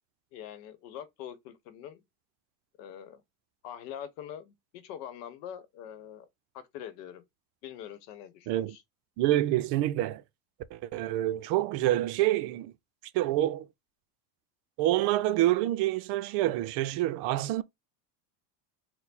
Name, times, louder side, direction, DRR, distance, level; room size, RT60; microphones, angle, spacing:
voice 1, 0.3-2.0 2.8-3.2 3.6-6.3 6.5-7.2 7.6-8.8, left 9 dB, 85° left, 1.0 m, -44 dB
voice 2, 8.5-8.8 9.2-10.2 10.7-12.7 13.1-13.7 14.8-17.6, right 14 dB, 60° right, 0.6 m, -27 dB
4.5 x 2.2 x 4.1 m
supercardioid pair, 120°, 47 cm